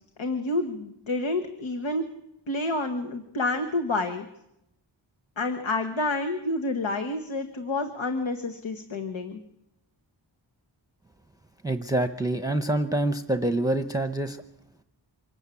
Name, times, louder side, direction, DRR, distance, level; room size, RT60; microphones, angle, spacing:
voice 1, 0.2-2.0 2.5-4.3 5.4-9.4, left 2 dB, 85° left, 5 dB, 1.6 m, -29 dB
voice 2, 11.6-14.4, right 1 dB, 10° right, 8 dB, 0.8 m, -26 dB
25.5 x 13.0 x 8.5 m, 0.83 s
wide cardioid pair, 80°, 46 cm